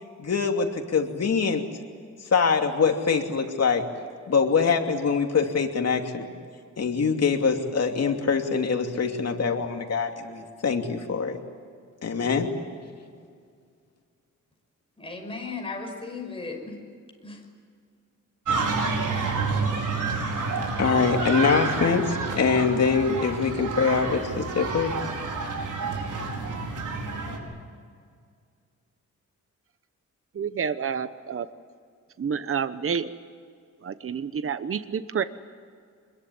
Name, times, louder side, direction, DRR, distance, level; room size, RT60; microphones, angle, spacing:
voice 1, 0.2-1.6 2.3-3.8 4.3-6.3 6.8-11.4 12.0-12.5 20.8-24.9, left 5 dB, 55° left, 3 dB, 2.9 m, -24 dB
voice 2, 15.0-16.8 17.2-17.4, left 3 dB, 15° left, 1 dB, 5.7 m, -36 dB
sound 1, 18.5-27.4, right 4 dB, 80° right, 5.1 m, -29 dB
voice 3, 30.3-31.5 32.2-33.1 33.8-35.2, right 7 dB, 45° right, 12 dB, 1.0 m, -29 dB
26.0 x 21.5 x 9.6 m, 2.1 s
wide cardioid pair, 120°, 31 cm